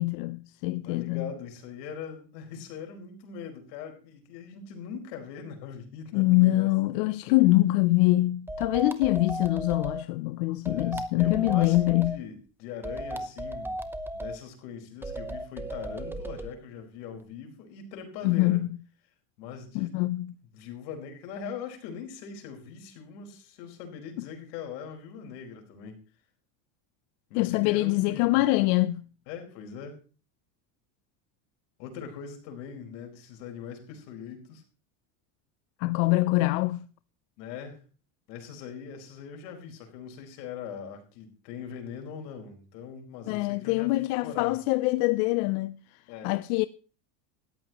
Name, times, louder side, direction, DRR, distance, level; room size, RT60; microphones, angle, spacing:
voice 1, 0.0-1.3 6.1-12.2 18.2-18.7 19.7-20.3 27.4-29.0 35.8-36.8 43.3-45.8 46.2-46.6, left 19 dB, 65° left, 0.7 m, -24 dB
voice 2, 0.8-7.1 10.7-13.8 14.1-18.6 19.4-20.0 20.5-26.0 27.3-28.4 29.3-30.0 31.8-34.6 37.4-37.8 38.3-44.6 46.1-46.3, left 7 dB, 80° left, 5.0 m, -41 dB
sound 1, 8.5-10.0 10.7-12.2 12.8-14.4 15.0-16.5, right 1 dB, 5° right, 0.9 m, -35 dB
18.5 x 14.5 x 3.0 m
supercardioid pair, 145°, 49 cm